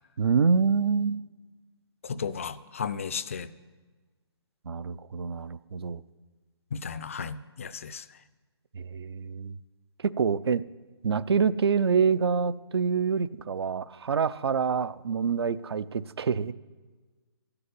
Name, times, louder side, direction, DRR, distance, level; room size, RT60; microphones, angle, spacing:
voice 1, 0.2-1.2 4.7-6.0 8.7-9.6 10.0-10.6 11.0-16.5, right 5 dB, 65° right, 17 dB, 0.5 m, -26 dB
voice 2, 2.0-3.5 6.7-8.1, left 6 dB, 30° left, 14 dB, 0.4 m, -34 dB
12.5 x 6.9 x 9.2 m, 1.3 s
hypercardioid pair, 165°, 14 cm